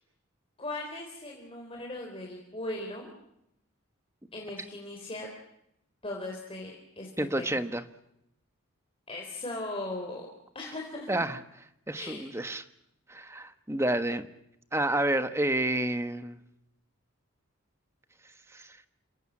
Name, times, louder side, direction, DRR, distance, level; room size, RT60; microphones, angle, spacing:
voice 1, 0.6-3.1 4.3-5.3 6.0-7.5 9.1-10.3 10.5-11.2 12.0-12.3, left 2 dB, 25° left, 0 dB, 3.9 m, -38 dB
voice 2, 7.2-7.8 11.1-11.4 11.9-12.6 13.1-14.2 14.7-16.4 18.5-18.8, right 1 dB, 10° right, 10 dB, 1.3 m, -29 dB
29.5 x 17.5 x 8.7 m, 0.80 s
head